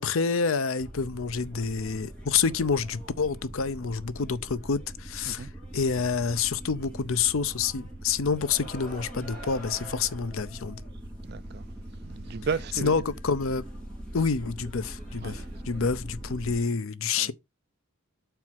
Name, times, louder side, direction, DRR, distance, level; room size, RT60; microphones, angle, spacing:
voice 1, 0.0-5.5 5.7-10.8 12.8-13.6 14.1-17.3, left 5 dB, 70° left, 0.6 m, -28 dB
sound 1, 0.8-16.6, right 1 dB, 5° left, 4.3 m, -42 dB
voice 2, 11.2-11.6 12.0-13.0 15.2-15.4 17.2-17.3, right 5 dB, 45° right, 0.4 m, -34 dB
5.8 x 4.6 x 5.9 m
head